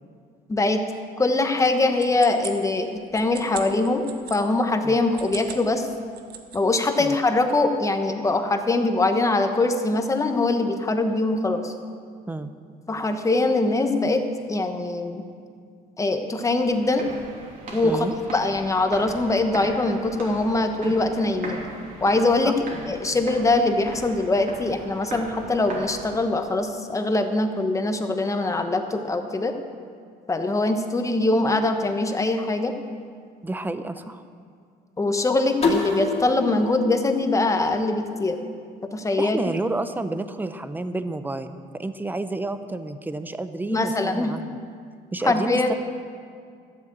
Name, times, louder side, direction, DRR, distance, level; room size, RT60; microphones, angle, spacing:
voice 1, 0.5-0.8 1.2-5.9 6.5-11.7 12.9-15.2 16.0-17.1 17.7-18.1 18.3-21.6 22.0-22.5 22.9-29.5 30.3-32.7 35.0-38.4 38.9-39.5 43.7-44.4 45.2-45.7, left 2 dB, 20° left, 6 dB, 1.1 m, -23 dB
sound 1, 1.6-4.4 5.0-5.7 6.0-6.8, right 9 dB, 70° right, 1.2 m, -39 dB
sound 2, 16.4-26.4, right 2 dB, 55° right, 3.1 m, -39 dB
voice 2, 17.8-18.1 33.4-34.2 39.2-44.6 45.1-45.7, right 2 dB, 10° right, 11 dB, 0.7 m, -30 dB
sound 3, 35.6-38.4, left 3 dB, 40° left, 2.4 m, -28 dB
12.5 x 8.0 x 7.5 m, 2.2 s
cardioid pair, 110°, 17 cm